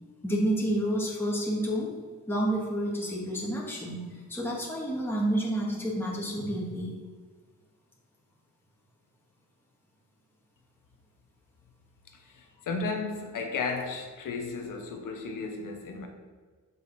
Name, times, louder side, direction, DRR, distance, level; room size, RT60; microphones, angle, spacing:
voice 1, 0.2-1.9 2.3-4.0 4.3-6.9, right 1 dB, 5° left, -5 dB, 1.6 m, -29 dB
voice 2, 12.1-16.1, left 4 dB, 80° left, 4 dB, 0.9 m, -34 dB
6.1 x 5.2 x 4.1 m, 1.5 s
cardioid pair, 70°, 32 cm